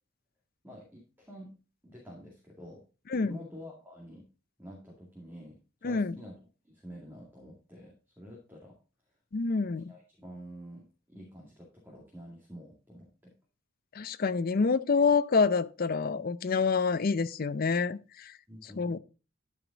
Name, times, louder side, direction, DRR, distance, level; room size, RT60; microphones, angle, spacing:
voice 1, 0.6-1.5 1.8-2.8 3.2-4.3 4.6-6.4 6.7-8.8 9.6-13.3 18.5-19.0, equal, 10° right, 2.2 m, -48 dB
voice 2, 5.8-6.2 9.3-9.9 13.9-18.3 18.6-19.0, left 4 dB, 45° left, 0.5 m, -27 dB
12.5 x 5.1 x 3.9 m
head